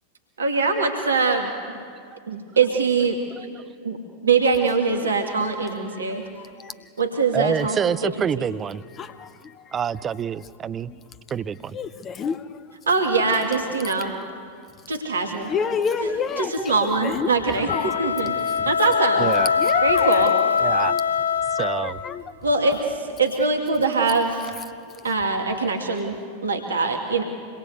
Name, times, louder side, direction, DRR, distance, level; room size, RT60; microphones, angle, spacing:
voice 1, 0.4-1.5 2.3-3.2 3.8-4.0 4.2-6.2 7.0-8.5 12.9-14.1 14.9-15.5 16.0-19.3 19.8-20.3 22.4-24.5 25.0-27.2, right 4 dB, 70° right, 4 dB, 2.4 m, -23 dB
voice 2, 7.3-8.8 9.7-10.9 11.3-11.8 19.2-19.5 20.6-20.9 21.5-22.0, right 8 dB, 25° right, 15 dB, 0.7 m, -26 dB
voice 3, 9.0-9.3 11.7-12.4 15.5-17.3 17.7-17.9 19.6-20.2 20.9-21.0 21.8-22.2, left 6 dB, 25° left, 13 dB, 0.9 m, -28 dB
sound 1, 17.6-22.1, left 7 dB, 75° left, 1.2 m, -22 dB
27.0 x 22.0 x 8.2 m, 2.2 s
figure-of-eight pair, 90°, 0 cm